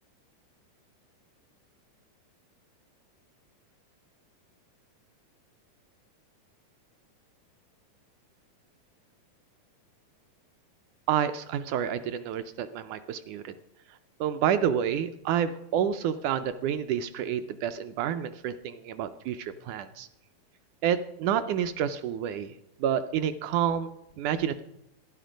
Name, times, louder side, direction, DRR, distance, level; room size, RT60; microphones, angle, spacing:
voice 1, 11.1-13.5 14.2-20.1 20.8-22.5 22.8-23.9 24.2-24.6, right 9 dB, 80° right, 10 dB, 1.8 m, -29 dB
16.5 x 11.5 x 5.1 m, 0.86 s
omnidirectional pair, 4.0 m